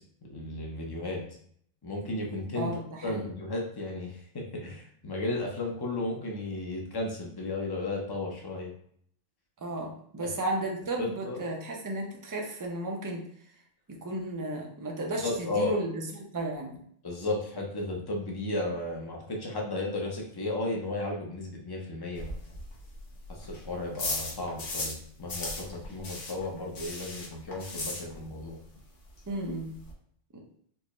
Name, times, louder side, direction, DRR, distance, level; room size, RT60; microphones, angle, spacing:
voice 1, 0.3-1.2 1.8-2.7 3.0-8.7 10.2-10.3 11.0-11.4 15.2-15.7 17.0-22.3 23.4-28.6, left 2 dB, 25° left, 0 dB, 0.5 m, -34 dB
voice 2, 2.5-3.3 9.6-13.2 14.0-16.8 29.3-29.7 30.3-30.4, right 1 dB, 30° right, 0 dB, 0.4 m, -34 dB
sound 1, 22.1-25.0 25.3-28.5 28.7-28.8 29.2-29.3 29.4-29.9, left 2 dB, 75° left, 1.3 m, -37 dB
4.6 x 2.2 x 3.0 m, 0.64 s
omnidirectional pair, 1.2 m